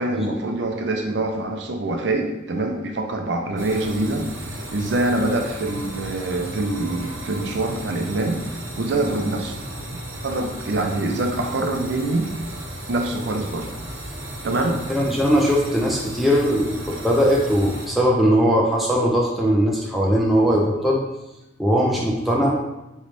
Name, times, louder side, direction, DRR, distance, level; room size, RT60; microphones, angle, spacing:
voice 1, 0.0-9.6 10.2-12.3 12.9-13.7 14.4-14.8, right 2 dB, 60° right, 3 dB, 0.5 m, -25 dB
sound 1, 3.6-17.9, right 1 dB, 80° right, 1.0 m, -35 dB
voice 2, 14.9-21.0 21.6-22.6, equal, ahead, -3 dB, 0.4 m, -20 dB
3.9 x 3.1 x 3.2 m, 0.94 s
head